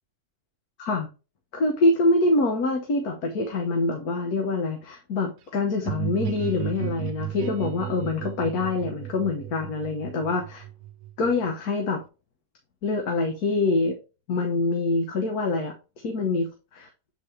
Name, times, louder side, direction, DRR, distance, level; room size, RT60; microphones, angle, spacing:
voice 1, 1.5-10.6 11.2-12.0 12.8-14.0 14.3-15.7 16.0-16.9, left 2 dB, 75° left, 4 dB, 1.6 m, -25 dB
sound 1, 5.8-11.5, right 13 dB, 70° right, 1.1 m, -34 dB
8.1 x 4.1 x 3.2 m, 0.31 s
omnidirectional pair, 1.6 m